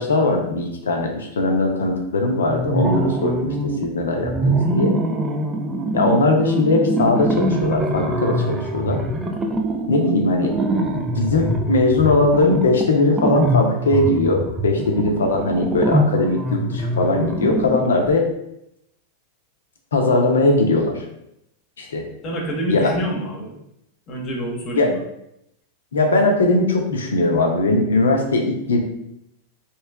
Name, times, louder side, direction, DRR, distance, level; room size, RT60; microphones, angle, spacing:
voice 1, 0.0-3.5 3.8-5.0 5.9-9.0 9.9-10.5 10.9-18.2 19.9-21.0 21.8-22.0 22.7-22.9 24.7-24.9 25.9-28.8, left 2 dB, 65° left, 2 dB, 0.7 m, -19 dB
sound 1, 2.5-3.9 4.2-18.1, right 1 dB, 15° right, 0.4 m, -23 dB
voice 2, 22.2-23.5 24.1-25.0, right 1 dB, 35° left, 0 dB, 1.0 m, -27 dB
3.1 x 3.1 x 3.4 m, 0.81 s
figure-of-eight pair, 90°, 0 cm